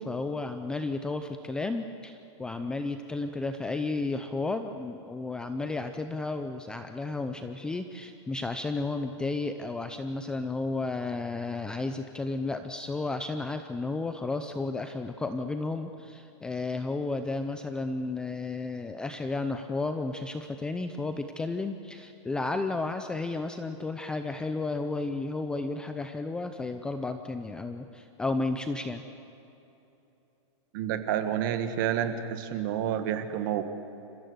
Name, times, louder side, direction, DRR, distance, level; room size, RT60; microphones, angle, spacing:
voice 1, 0.0-29.0, left 3 dB, 5° left, 7 dB, 0.5 m, -33 dB
voice 2, 30.7-33.6, right 10 dB, 40° right, 9 dB, 1.7 m, -29 dB
29.0 x 15.5 x 8.0 m, 3.0 s
hypercardioid pair, 165°, 16 cm